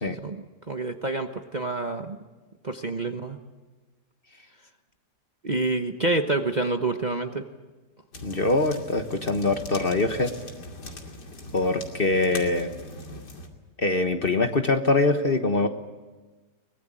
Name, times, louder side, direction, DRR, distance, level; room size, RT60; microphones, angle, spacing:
voice 1, 0.1-2.2 2.6-3.4 5.4-7.4, right 2 dB, 30° right, 5 dB, 1.0 m, -28 dB
sound 1, 8.1-13.5, left 1 dB, 85° left, 3.2 m, -41 dB
voice 2, 8.2-10.3 11.5-12.7 13.8-15.7, left 2 dB, 35° left, 7 dB, 1.4 m, -23 dB
23.5 x 20.0 x 9.0 m, 1.3 s
omnidirectional pair, 1.8 m